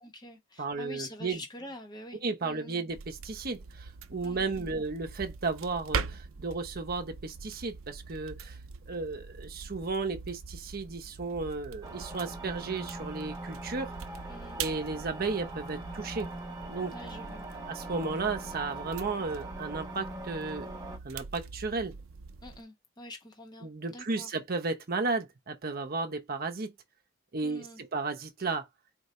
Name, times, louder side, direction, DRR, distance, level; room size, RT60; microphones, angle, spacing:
voice 1, 0.0-2.9 4.2-4.7 14.3-14.6 16.9-17.5 22.4-24.3 27.4-27.8, left 1 dB, 20° left, 1.1 m, -46 dB
voice 2, 0.6-1.4 2.2-8.6 8.9-13.9 14.6-16.3 16.7-16.9 17.7-20.7 21.0-22.0 23.6-26.7 27.3-28.7, right 3 dB, 50° right, 0.8 m, -34 dB
sound 1, 2.9-22.6, right 5 dB, 90° right, 0.6 m, -43 dB
sound 2, 11.8-21.0, right 2 dB, 20° right, 1.1 m, -42 dB
4.4 x 2.8 x 3.1 m
head